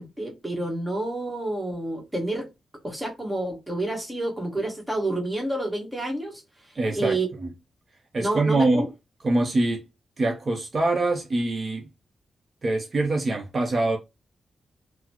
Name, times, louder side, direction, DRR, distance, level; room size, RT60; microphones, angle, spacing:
voice 1, 0.0-2.5 2.8-6.4 6.9-7.3 8.2-8.8, right 2 dB, 10° right, 1.2 m, -29 dB
voice 2, 6.7-7.5 8.1-8.8 9.2-9.8 10.2-11.9 12.6-14.0, right 2 dB, 40° right, 0.6 m, -24 dB
3.9 x 2.0 x 2.9 m
cardioid pair, 105°, 0 cm